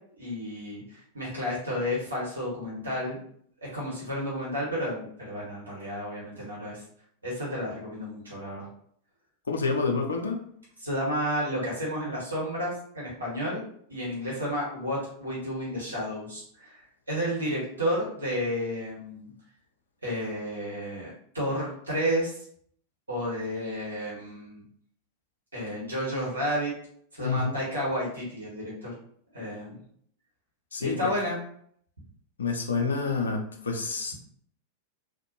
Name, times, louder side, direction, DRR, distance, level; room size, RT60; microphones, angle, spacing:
voice 1, 0.2-3.2 3.6-6.8 7.2-8.7 10.8-13.6 13.9-16.8 17.1-19.3 20.0-22.4 23.1-24.6 25.5-26.7 27.1-28.9 29.3-29.8 30.8-31.4, equal, 75° right, -6 dB, 1.5 m, -31 dB
voice 2, 9.5-10.4 27.2-27.5 30.7-31.0 32.4-34.1, left 4 dB, 70° left, 2 dB, 0.6 m, -28 dB
3.9 x 2.5 x 3.0 m, 0.63 s
figure-of-eight pair, 90°, 0 cm